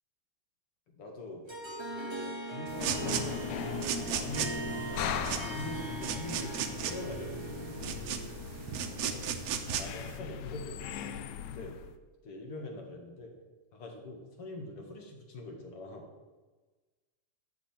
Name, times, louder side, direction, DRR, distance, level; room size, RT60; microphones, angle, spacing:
voice 1, 0.9-1.4 1.8-3.4 3.9-4.9 5.4-7.9 8.9-9.3 9.8-11.1 11.5-11.7 12.2-13.3 13.7-16.0, left 2 dB, 50° left, 1 dB, 2.6 m, -43 dB
Harp, 1.5-9.9, right 3 dB, 15° right, 0.9 m, -41 dB
sound 1, 2.7-10.2, right 8 dB, 70° right, 1.9 m, -36 dB
sound 2, 2.8-12.0, left 8 dB, 75° left, 1.9 m, -39 dB
12.5 x 5.2 x 8.9 m, 1.3 s
omnidirectional pair, 3.4 m